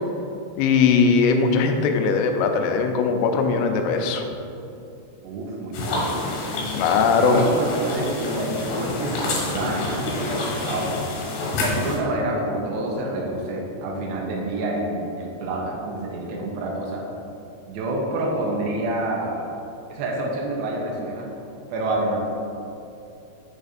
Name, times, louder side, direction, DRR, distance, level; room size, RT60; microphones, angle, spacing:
voice 1, 0.6-4.2 6.7-7.4, left 5 dB, 85° left, 5 dB, 3.1 m, -20 dB
voice 2, 5.2-6.1 7.1-10.9 11.5-17.0 17.7-19.4 19.9-21.3 21.7-22.2, right 1 dB, 85° right, -2 dB, 2.5 m, -27 dB
sound 1, 5.7-12.0, left 2 dB, 70° left, 3.3 m, -28 dB
7.5 x 6.5 x 2.6 m, 2.7 s
omnidirectional pair, 5.6 m